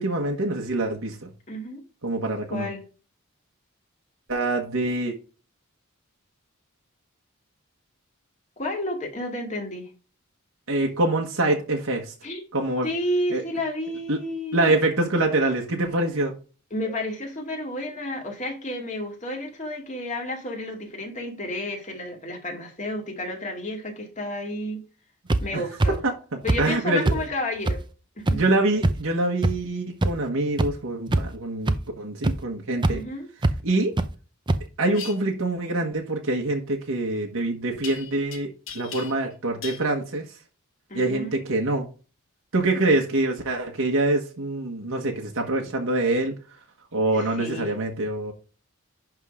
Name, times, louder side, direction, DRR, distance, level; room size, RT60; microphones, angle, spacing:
voice 1, 0.0-1.3 2.0-2.7 4.3-5.1 10.7-12.1 12.5-12.9 13.3-13.4 14.1-14.2 14.5-16.3 25.5-25.6 26.0-26.1 26.6-27.2 28.3-33.0 33.6-33.9 34.8-38.5 38.7-40.2 40.9-41.9 42.5-46.3 46.9-48.3, right 2 dB, 70° right, 1.3 m, -25 dB
voice 2, 1.5-1.8 2.5-2.8 8.6-9.9 12.2-12.4 12.8-14.8 16.7-24.8 25.4-26.0 26.4-27.8 28.2-28.4 32.9-33.3 40.9-41.4 47.1-47.8, left 1 dB, 35° left, 2.3 m, -31 dB
sound 1, 25.3-25.4 25.8-25.9 26.5-26.6 27.0-27.2 27.7-27.8 28.3-28.4 28.8-28.9 29.4-29.5 30.0-30.1 30.6-30.7 31.1-31.4 31.7-31.8 32.2-32.3 32.8-32.9 33.4-33.5 34.0-34.1 34.5-34.6, right 2 dB, 20° right, 0.5 m, -21 dB
sound 2, 34.9-35.1 37.8-38.4 38.7-39.3 39.6-39.8, left 7 dB, 65° left, 2.2 m, -37 dB
11.0 x 3.7 x 4.9 m
head